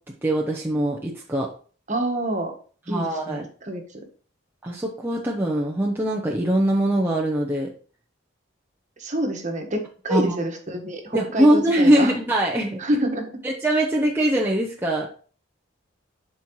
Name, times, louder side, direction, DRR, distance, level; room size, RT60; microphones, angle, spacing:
voice 1, 0.2-1.5 2.9-3.4 4.6-7.7 10.1-10.4 11.1-12.8 13.4-15.1, right 1 dB, 10° right, -2 dB, 0.7 m, -22 dB
voice 2, 1.9-2.5 2.9-3.8 9.0-12.1 12.8-13.3, right 1 dB, 35° right, 3 dB, 1.4 m, -27 dB
11.0 x 4.4 x 3.1 m, 0.42 s
head